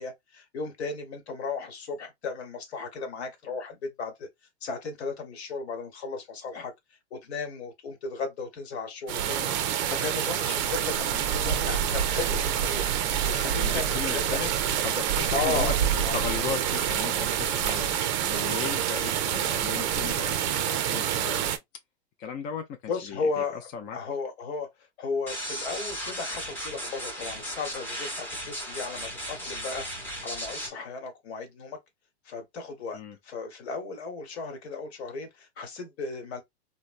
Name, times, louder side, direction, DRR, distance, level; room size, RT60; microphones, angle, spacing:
voice 1, 0.0-4.3 4.6-6.7 7.1-12.9 13.3-14.4 15.3-15.8 16.0-16.2 22.9-23.6 23.9-24.7 25.0-31.8 32.2-36.4, left 4 dB, 70° left, 1.2 m, -35 dB
sound 1, 9.1-21.6, right 9 dB, 40° right, 0.5 m, -27 dB
voice 2, 13.5-14.5 14.8-15.7 16.1-21.4 22.2-22.7 23.0-24.0 32.9-33.2, left 7 dB, 25° left, 0.4 m, -36 dB
sound 2, 25.3-30.7, equal, 5° left, 0.8 m, -36 dB
2.9 x 2.1 x 2.4 m
hypercardioid pair, 120°, 33 cm